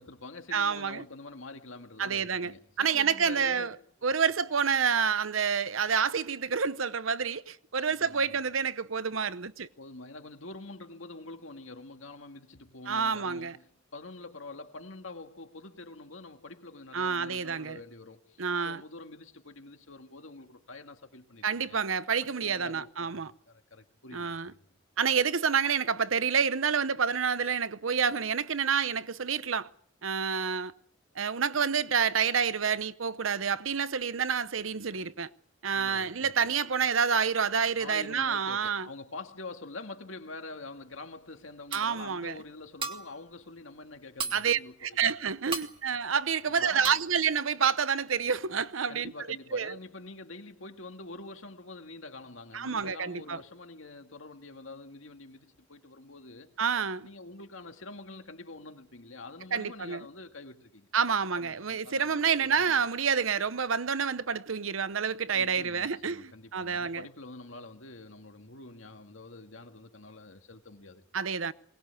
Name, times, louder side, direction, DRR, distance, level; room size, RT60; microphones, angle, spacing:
voice 1, 0.0-3.7 7.8-8.4 9.8-21.8 22.2-24.4 35.7-36.3 37.8-45.1 45.6-45.7 46.4-47.0 48.9-56.5 57.0-60.9 61.4-62.8 65.3-71.0, left 3 dB, 85° left, 2.1 m, -46 dB
voice 2, 0.5-1.0 2.0-2.5 2.8-3.7 4.0-9.7 12.9-13.6 16.9-17.8 18.4-18.8 21.4-23.3 24.1-24.5 25.0-29.7 30.0-30.7 31.2-35.3 35.6-38.9 41.7-42.3 44.3-49.1 49.5-49.8 52.5-53.4 56.6-57.1 59.5-60.0 60.9-67.0 71.1-71.5, right 6 dB, 90° right, 0.9 m, -28 dB
sound 1, 40.9-41.0 41.4-41.5 41.7-42.1 42.6-43.2 43.6-43.7 43.9-44.6 45.0-45.1 45.5-45.8 46.2-46.5 46.8-47.1, right 5 dB, 25° right, 2.1 m, -37 dB
22.5 x 19.5 x 8.4 m
head